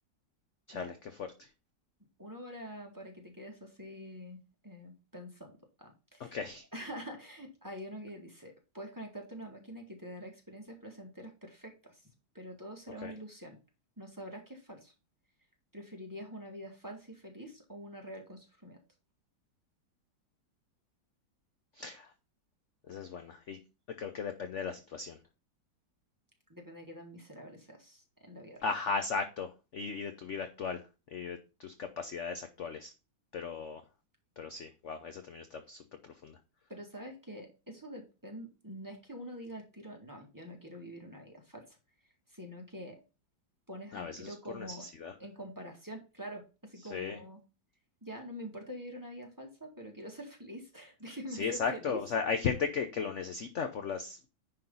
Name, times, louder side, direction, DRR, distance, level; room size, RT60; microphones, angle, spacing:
voice 1, 0.7-1.5 6.2-6.6 13.0-13.1 21.8-22.1 22.9-23.6 24.0-25.2 28.6-30.8 31.1-32.9 33.3-33.8 34.4-35.8 36.2-36.4 43.9-45.1 46.9-47.2 51.4-54.3, left 5 dB, 55° left, 7 dB, 0.9 m, -36 dB
voice 2, 2.2-5.5 5.8-6.4 6.7-12.1 12.3-13.6 14.0-14.9 15.7-18.8 26.5-28.7 36.7-41.8 42.3-43.0 43.7-44.9 45.2-47.4 48.0-52.0, equal, 10° right, 1 dB, 1.8 m, -46 dB
10.0 x 3.9 x 5.5 m, 0.30 s
omnidirectional pair, 2.0 m